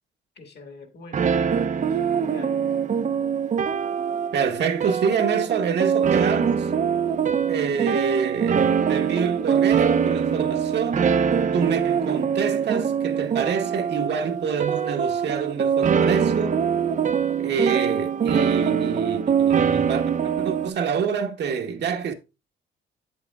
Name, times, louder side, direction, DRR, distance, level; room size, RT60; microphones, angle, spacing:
voice 1, 0.3-2.6, left 3 dB, 60° left, 1.6 m, -44 dB
sound 1, 1.1-20.7, right 7 dB, 40° right, 0.5 m, -23 dB
voice 2, 4.3-6.7 7.5-11.1 11.5-16.6 17.4-20.0 20.4-22.1, right 6 dB, 60° right, 1.0 m, -26 dB
7.9 x 7.5 x 2.3 m
cardioid pair, 90°, 20 cm